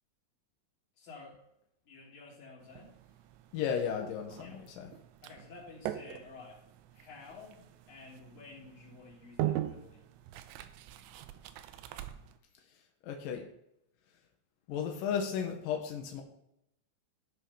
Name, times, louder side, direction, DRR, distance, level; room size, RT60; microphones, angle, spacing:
voice 1, 1.0-1.4 1.8-3.0 4.4-4.6 5.2-6.6 6.9-10.1, left 3 dB, 40° left, -4 dB, 4.1 m, -51 dB
sound 1, 2.6-12.4, right 13 dB, 85° right, 2.5 m, -42 dB
voice 2, 3.5-4.9 13.0-13.4 14.7-16.2, left 7 dB, 75° left, 2 dB, 2.0 m, -34 dB
16.0 x 5.6 x 5.7 m, 0.80 s
omnidirectional pair, 5.9 m